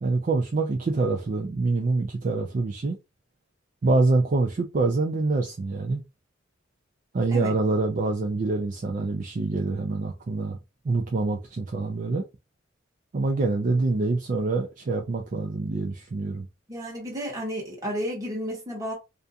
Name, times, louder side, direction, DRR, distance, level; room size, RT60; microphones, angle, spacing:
voice 1, 0.0-3.0 3.8-6.0 7.1-10.6 10.8-12.2 13.1-16.5, right 3 dB, 40° right, 0.4 m, -25 dB
voice 2, 16.7-18.9, equal, 20° right, 1.1 m, -32 dB
2.5 x 2.2 x 2.6 m
head